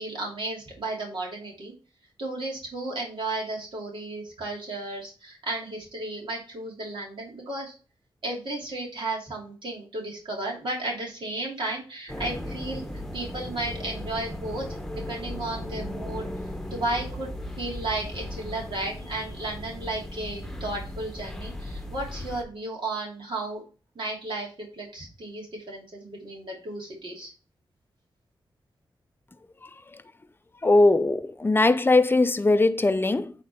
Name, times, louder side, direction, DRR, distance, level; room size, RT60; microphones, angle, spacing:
voice 1, 0.0-1.7 2.2-7.7 8.2-12.8 13.1-14.7 15.1-16.2 16.7-23.6 23.9-27.3, right 2 dB, 65° right, 2.9 m, -34 dB
sound 1, 12.1-22.4, left 1 dB, 5° left, 1.2 m, -36 dB
voice 2, 30.6-33.3, left 2 dB, 25° left, 0.6 m, -20 dB
8.4 x 3.9 x 4.4 m
cardioid pair, 70°, 9 cm